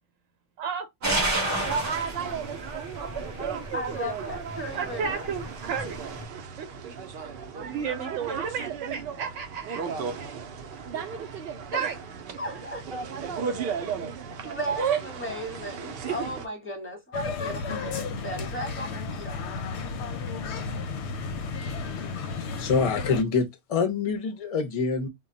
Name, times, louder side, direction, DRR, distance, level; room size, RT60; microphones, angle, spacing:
voice 1, 0.6-2.0 2.6-2.7 3.7-4.1 4.7-6.0 6.3-6.9 7.6-10.3 10.9-11.0 11.7-11.9 13.4-13.5 13.8-13.9, right 6 dB, 85° right, 0.9 m, -34 dB
sound 1, 1.0-6.2, right 1 dB, 20° right, 0.6 m, -32 dB
sound 2, 1.0-16.4, right 6 dB, 60° right, 0.7 m, -34 dB
voice 2, 3.7-5.3 11.7-11.9 12.4-12.9 14.4-19.4, right 1 dB, 10° left, 1.0 m, -35 dB
sound 3, 17.1-23.2, left 4 dB, 70° left, 0.8 m, -33 dB
voice 3, 22.4-25.1, left 5 dB, 40° left, 0.5 m, -26 dB
2.2 x 2.1 x 3.7 m
omnidirectional pair, 1.3 m